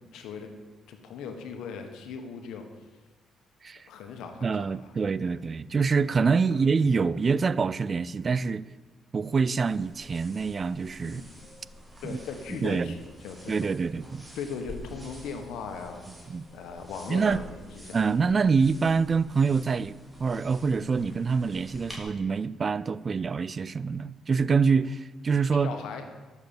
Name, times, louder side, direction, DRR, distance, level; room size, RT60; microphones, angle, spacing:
voice 1, 0.1-0.5 0.9-2.6 3.9-4.9 5.2-5.3 6.5-6.6 11.0-11.5 12.0-13.7 14.3-16.1 16.5-18.0 25.6-26.0, left 5 dB, 85° left, 1.5 m, -39 dB
voice 2, 4.4-8.7 9.1-11.2 12.0-12.2 12.6-12.9 13.5-14.2 16.3-16.4 17.1-17.4 17.9-25.7, right 5 dB, 40° right, 0.4 m, -26 dB
sound 1, 9.7-22.0, equal, 15° right, 3.2 m, -48 dB
11.5 x 7.3 x 7.1 m
cardioid pair, 90°, 0 cm